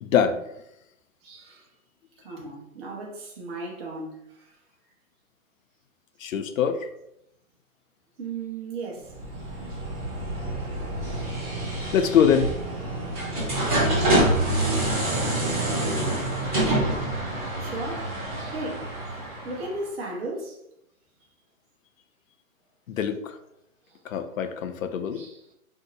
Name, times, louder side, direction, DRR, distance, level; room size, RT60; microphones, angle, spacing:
voice 1, 0.0-0.4 6.2-6.9 11.9-12.5 22.9-23.4 24.1-25.2, left 8 dB, 70° left, 0.5 m, -23 dB
voice 2, 1.2-1.7 2.2-4.6 8.2-9.2 10.4-10.5 13.7-14.0 16.3-16.7 17.6-18.9 19.4-20.6 23.9-24.0 25.1-25.6, right 2 dB, 45° right, 0.9 m, -36 dB
sound 1, 9.1-19.8, right 1 dB, 15° right, 0.7 m, -27 dB
2.7 x 2.0 x 3.9 m
hypercardioid pair, 150°, 41 cm